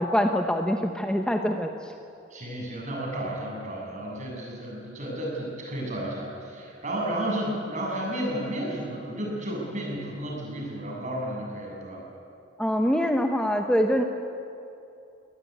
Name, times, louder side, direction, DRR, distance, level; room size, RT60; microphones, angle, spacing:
voice 1, 0.0-1.9 12.6-14.0, equal, 5° left, 4 dB, 1.0 m, -24 dB
voice 2, 2.3-12.0, right 1 dB, 40° right, -2 dB, 7.8 m, -32 dB
24.0 x 18.5 x 9.6 m, 2.6 s
head